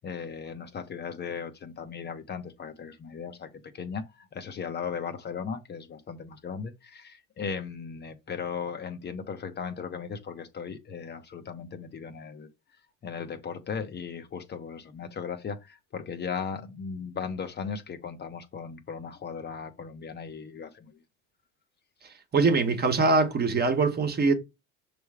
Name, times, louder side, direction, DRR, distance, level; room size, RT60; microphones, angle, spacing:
voice 1, 0.0-3.5 3.7-12.5 13.0-21.0, left 6 dB, 30° left, 0.9 m, -37 dB
voice 2, 22.3-24.3, right 3 dB, 25° right, 1.2 m, -23 dB
6.1 x 3.3 x 4.8 m
supercardioid pair, 105°, 35 cm